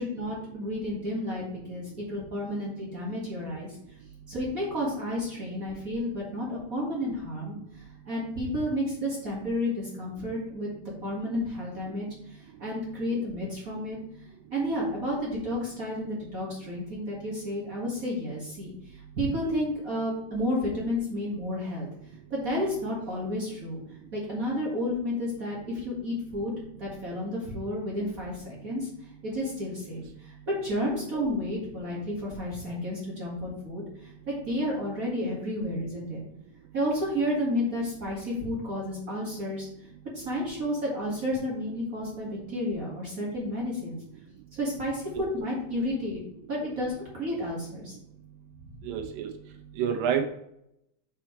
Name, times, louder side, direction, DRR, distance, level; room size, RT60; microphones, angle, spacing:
voice 1, 0.0-3.7 4.3-10.7 11.0-14.0 14.5-21.9 22.3-23.8 24.1-26.5 26.8-28.9 29.2-36.2 36.7-39.7 40.1-44.0 44.5-46.2 46.5-48.0, left 1 dB, 35° right, -4 dB, 1.4 m, -31 dB
voice 2, 48.8-49.3 49.8-50.3, right 8 dB, 85° right, 4 dB, 2.7 m, -28 dB
6.1 x 4.6 x 4.5 m, 0.77 s
omnidirectional pair, 3.9 m